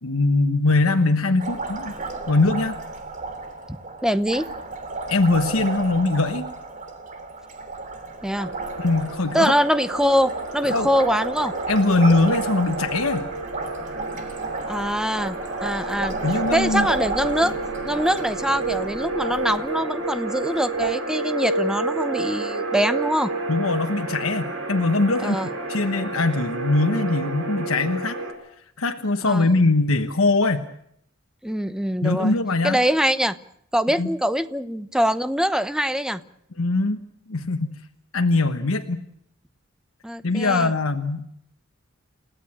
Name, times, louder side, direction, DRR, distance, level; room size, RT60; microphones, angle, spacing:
voice 1, 0.0-2.0 2.3-2.8 5.1-6.5 8.8-9.5 10.6-10.9 11.7-13.3 16.2-16.9 23.5-25.4 25.7-28.2 28.8-30.7 32.0-32.8 34.0-34.1 36.6-37.0 37.3-37.8 38.1-39.0 40.2-41.3, left 3 dB, 85° left, 6 dB, 1.2 m, -21 dB
Liquid, 1.4-20.9, right 3 dB, 40° right, 2.9 m, -32 dB
voice 2, 4.0-4.5 8.2-8.5 9.3-11.5 14.6-15.4 15.6-16.2 16.5-17.5 17.9-23.3 25.2-25.5 29.2-29.6 31.4-32.4 32.6-33.4 33.7-36.2 40.0-40.7, equal, 5° right, 12 dB, 0.9 m, -23 dB
sound 1, 8.3-28.3, right 3 dB, 70° right, 5.4 m, -31 dB
29.0 x 15.5 x 8.8 m, 0.73 s
head